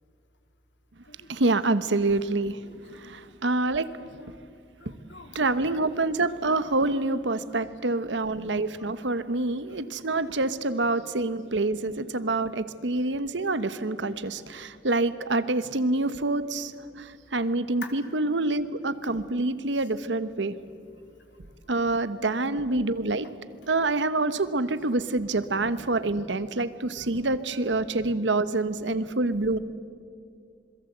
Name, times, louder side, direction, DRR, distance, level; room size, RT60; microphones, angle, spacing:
voice 1, 1.3-2.6 3.0-3.9 4.9-5.0 5.3-16.7 17.0-20.6 21.7-23.3 23.7-29.6, right 2 dB, 80° right, 14 dB, 1.1 m, -26 dB
voice 2, 2.6-3.3 3.9-4.4 4.8-5.3 8.1-8.2 8.7-8.9 10.0-10.4 14.4-14.5 17.8-17.9 19.7-19.9 22.1-22.3, left 4 dB, 80° left, 5 dB, 3.1 m, -48 dB
26.5 x 21.5 x 8.0 m, 2.4 s
head